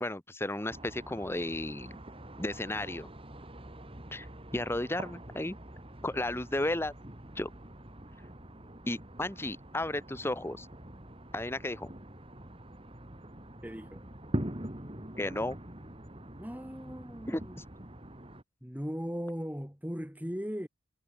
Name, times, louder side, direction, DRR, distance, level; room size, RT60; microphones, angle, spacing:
voice 1, 0.0-2.0 2.4-3.1 4.1-4.3 4.5-5.6 6.0-6.9 7.4-7.5 8.9-10.7 11.3-11.9 15.2-15.6 17.3-17.4, left 1 dB, 10° left, 1.1 m, -33 dB
sound 1, 0.7-18.4, right 1 dB, 25° right, 3.2 m, -44 dB
voice 2, 13.6-14.1 16.4-17.6 18.6-20.7, equal, 10° right, 3.1 m, -38 dB
head